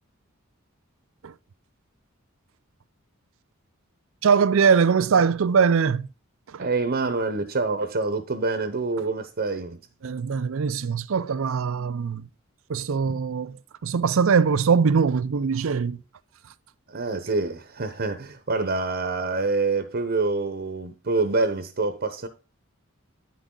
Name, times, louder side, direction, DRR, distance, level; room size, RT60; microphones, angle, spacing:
voice 1, 4.2-6.1 6.5-6.7 10.0-12.3 12.7-16.0, right 6 dB, 70° right, 0.5 m, -22 dB
voice 2, 6.6-9.8 16.9-22.3, right 3 dB, 50° right, 0.8 m, -26 dB
9.1 x 6.2 x 3.7 m
head